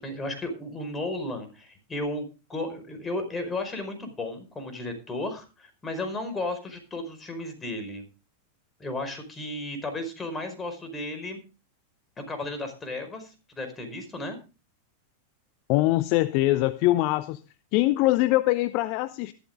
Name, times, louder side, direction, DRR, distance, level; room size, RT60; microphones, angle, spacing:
voice 1, 0.0-8.0 8.8-11.4 12.2-14.4, left 2 dB, 15° left, 5.1 m, -34 dB
voice 2, 15.7-17.4 17.7-19.3, left 17 dB, 45° left, 0.6 m, -23 dB
14.0 x 13.0 x 3.7 m
figure-of-eight pair, 90°, 0 cm